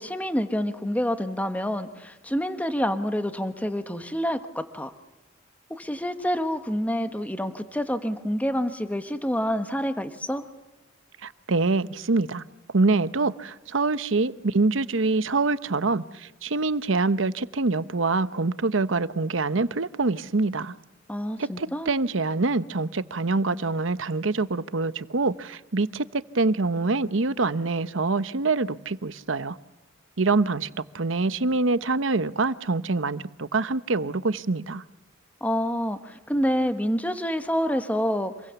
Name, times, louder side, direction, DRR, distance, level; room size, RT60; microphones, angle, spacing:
voice 1, 0.0-4.9 5.7-10.4 21.1-21.9 35.4-38.3, equal, 10° left, 1.1 m, -27 dB
voice 2, 11.2-12.4 12.7-20.7 21.4-29.6 30.2-30.7 30.9-34.8, right 3 dB, 75° right, 0.9 m, -25 dB
27.0 x 22.5 x 7.0 m
head